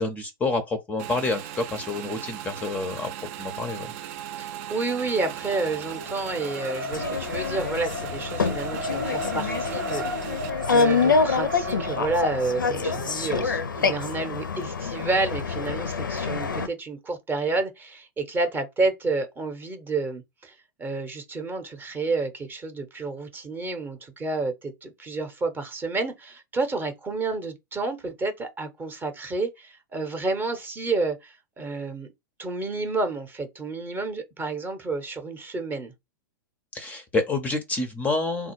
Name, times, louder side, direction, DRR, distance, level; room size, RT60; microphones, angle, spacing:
voice 1, 0.0-3.1 3.4-3.9 36.7-38.5, left 3 dB, 15° left, 0.5 m, -28 dB
Motorcycle / Engine, 1.0-10.5, right 11 dB, 45° right, 0.4 m, -38 dB
voice 2, 4.4-20.5 20.8-32.1 32.4-35.9, right 3 dB, 15° right, 0.7 m, -30 dB
Race car auto racing, 5.2-14.3, left 1 dB, 85° right, 1.0 m, -34 dB
sound 1, 6.9-16.7, left 4 dB, 75° left, 0.5 m, -26 dB
3.5 x 2.3 x 3.0 m
figure-of-eight pair, 100°, 11 cm